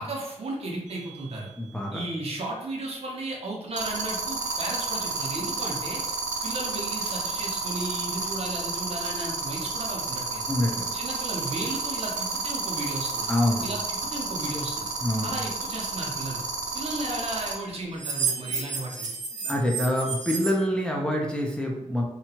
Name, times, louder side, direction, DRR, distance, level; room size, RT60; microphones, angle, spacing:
voice 1, 0.0-1.5 1.9-6.0 6.4-10.5 10.9-13.3 13.6-14.9 15.2-16.4 16.7-19.1, right 2 dB, 55° right, -1 dB, 0.7 m, -34 dB
sound 1, 0.9-1.2 3.8-17.5 18.0-20.5, right 5 dB, 90° right, 0.6 m, -30 dB
voice 2, 1.6-2.0 10.5-10.9 13.3-13.7 15.0-15.3 19.4-22.0, left 1 dB, 10° left, -2 dB, 0.4 m, -26 dB
2.8 x 2.3 x 2.8 m, 0.90 s
wide cardioid pair, 110°, 12 cm